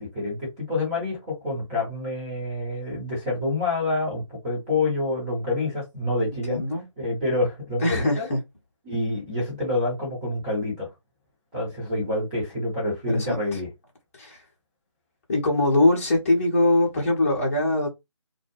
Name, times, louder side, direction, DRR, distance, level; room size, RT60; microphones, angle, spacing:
voice 1, 0.0-6.6 7.0-8.3 8.8-10.9 11.5-13.7, left 2 dB, 15° right, 1.0 m, -27 dB
voice 2, 6.5-6.8 7.8-8.4 13.1-13.6 14.2-14.4 15.3-17.9, left 2 dB, 25° left, 0.8 m, -22 dB
2.3 x 2.0 x 3.1 m
figure-of-eight pair, 155°, 16 cm